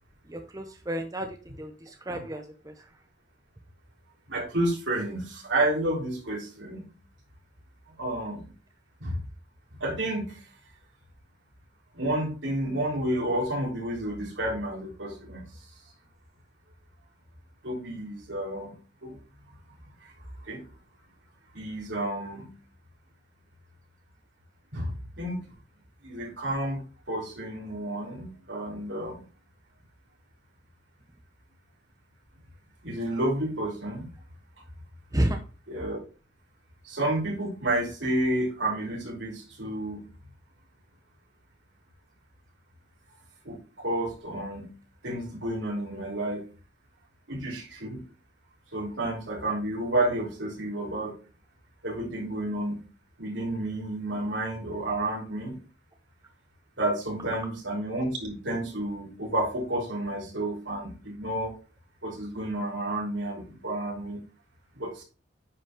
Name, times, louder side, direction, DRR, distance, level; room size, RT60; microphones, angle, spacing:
voice 1, 0.3-2.9 35.1-35.4, right 1 dB, 20° right, 5 dB, 0.8 m, -31 dB
voice 2, 4.3-6.9 8.0-8.4 9.0-9.2 9.8-10.4 11.9-15.5 17.6-19.2 20.0-20.1 20.5-20.6 21.5-22.5 24.7-25.4 26.0-29.2 32.8-34.1 35.7-36.0 36.8-40.1 43.5-44.7 45.0-46.5 47.3-48.0 48.7-51.2 51.8-52.8 53.2-55.6 56.8-61.5 62.0-64.2 64.7-65.0, right 1 dB, 80° right, -2 dB, 3.6 m, -30 dB
9.6 x 5.2 x 3.8 m, 0.34 s
head